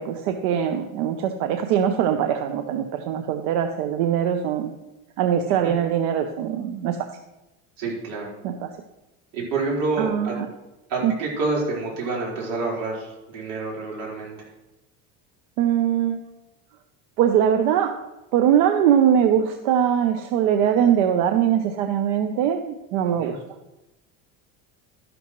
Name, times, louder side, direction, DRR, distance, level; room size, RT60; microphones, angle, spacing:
voice 1, 0.0-4.7 5.2-7.0 8.4-8.8 10.0-10.5 11.0-11.1 15.6-16.2 17.2-17.9 18.3-23.4, right 9 dB, 85° right, 6 dB, 0.9 m, -22 dB
voice 2, 7.8-8.3 9.3-10.4 10.9-14.5 23.2-23.4, right 3 dB, 60° right, -4 dB, 4.5 m, -28 dB
12.5 x 11.5 x 3.1 m, 1.0 s
cardioid pair, 180°, 35 cm